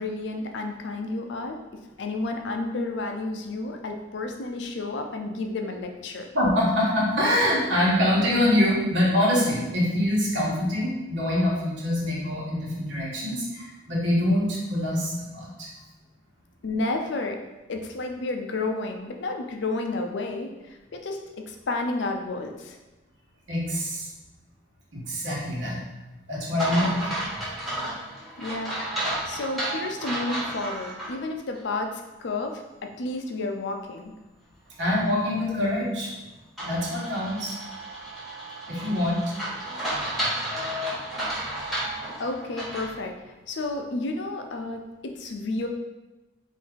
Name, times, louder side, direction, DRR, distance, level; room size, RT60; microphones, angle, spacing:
voice 1, 0.0-1.6 2.0-6.3 16.6-17.4 17.7-22.8 28.4-28.9 29.3-34.1 41.9-43.1 43.5-45.7, left 2 dB, 75° left, 4 dB, 0.5 m, -31 dB
voice 2, 6.3-15.7 23.5-24.1 24.9-25.8 26.3-27.0 34.8-36.1 36.6-37.6 38.7-39.3, left 1 dB, 85° right, -5 dB, 1.3 m, -24 dB
sound 1, 26.6-31.1 31.5-31.6 36.6-42.9, right 1 dB, ahead, 1.1 m, -32 dB
4.5 x 2.7 x 3.6 m, 1.0 s
head